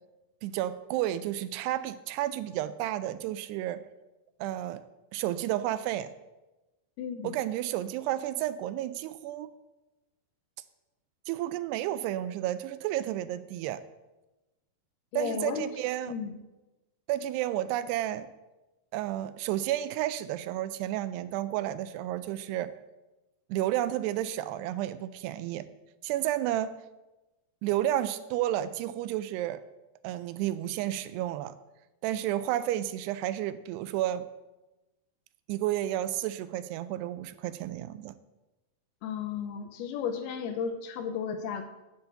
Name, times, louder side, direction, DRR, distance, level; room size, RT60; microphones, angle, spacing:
voice 1, 0.4-3.8 4.4-4.8 5.1-6.1 7.2-9.5 11.3-13.8 15.2-16.1 17.1-18.3 18.9-22.7 23.5-25.7 26.0-26.7 27.6-29.6 30.0-31.5 32.0-34.3 35.5-38.2, right 13 dB, 85° right, 13 dB, 2.6 m, -31 dB
voice 2, 7.0-7.4 15.1-15.7 16.1-16.3 39.0-41.7, left 7 dB, 80° left, 7 dB, 2.6 m, -34 dB
8.0 x 6.9 x 6.9 m, 1.0 s
omnidirectional pair, 4.7 m